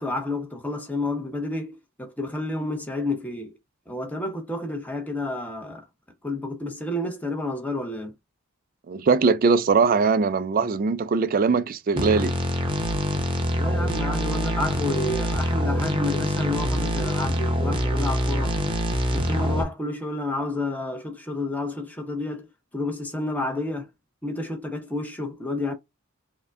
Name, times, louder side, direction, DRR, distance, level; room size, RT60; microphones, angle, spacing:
voice 1, 0.0-3.5 3.9-5.9 6.2-8.1 13.5-18.6 19.1-23.9 24.2-25.7, left 2 dB, 10° left, 0.8 m, -30 dB
voice 2, 8.9-12.3, right 5 dB, 40° right, 0.3 m, -21 dB
sound 1, 12.0-19.6, equal, 25° right, 0.7 m, -25 dB
4.8 x 2.2 x 2.4 m
head